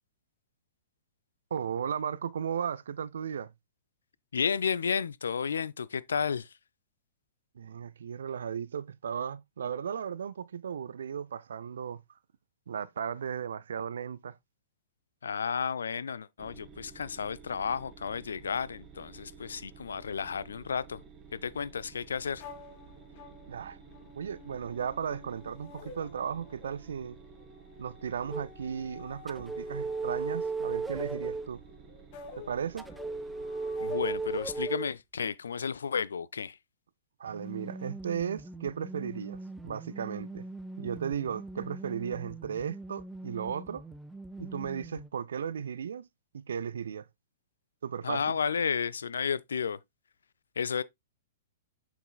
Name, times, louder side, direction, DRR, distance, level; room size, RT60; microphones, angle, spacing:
voice 1, 1.5-3.5 7.6-12.0 12.7-14.3 23.5-23.8 24.2-27.2 27.8-31.6 32.5-32.9 37.2-40.5 40.8-43.8 44.4-46.1 46.3-47.1 47.8-48.2, right 7 dB, 60° right, 0.3 m, -35 dB
voice 2, 4.3-6.5 15.2-21.0 21.3-22.4 33.8-36.6 48.0-49.8 50.6-50.8, left 6 dB, 65° left, 0.3 m, -32 dB
sound 1, 16.4-34.7, right 6 dB, 25° right, 1.3 m, -53 dB
sound 2, 22.4-34.7, left 5 dB, 40° left, 1.3 m, -51 dB
sound 3, 28.3-28.5 29.3-31.5 32.8-34.9 37.3-45.1, right 3 dB, 5° right, 0.5 m, -38 dB
6.7 x 6.1 x 2.3 m
figure-of-eight pair, 105°, 0 cm